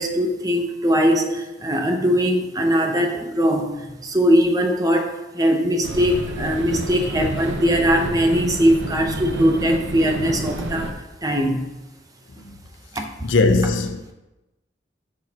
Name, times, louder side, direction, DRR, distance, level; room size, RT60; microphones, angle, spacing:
voice 1, 0.0-11.7 12.9-13.1, equal, 20° right, 0.7 m, -20 dB
sound 1, 5.8-10.9, right 1 dB, 85° right, 0.8 m, -29 dB
voice 2, 13.2-14.1, left 3 dB, 90° left, 0.7 m, -19 dB
9.1 x 6.2 x 2.9 m
head